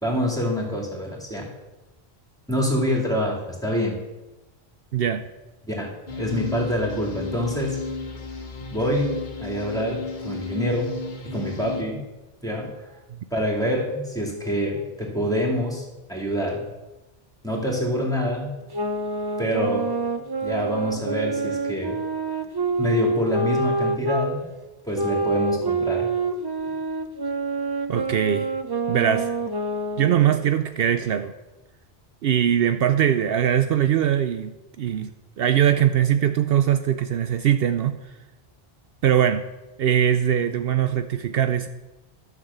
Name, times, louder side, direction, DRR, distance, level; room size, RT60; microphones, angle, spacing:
voice 1, 0.0-1.5 2.5-4.0 5.7-7.8 8.7-11.0 11.2-12.1 12.4-12.9 13.3-16.6 17.4-18.5 19.4-19.9 20.4-22.0 22.8-24.4 24.8-26.1, equal, 5° left, -1 dB, 2.4 m, -26 dB
voice 2, 4.9-5.3 13.1-13.2 27.9-28.5 28.9-29.3 30.0-31.3 32.2-35.1 35.4-38.0 39.0-39.5 39.8-41.7, right 10 dB, 70° right, 9 dB, 0.8 m, -21 dB
sound 1, 6.1-11.8, left 3 dB, 50° left, 1.3 m, -33 dB
sound 2, 18.7-24.3 24.9-30.4, right 3 dB, 30° right, 0.6 m, -26 dB
12.0 x 6.0 x 7.1 m, 1.1 s
omnidirectional pair, 1.1 m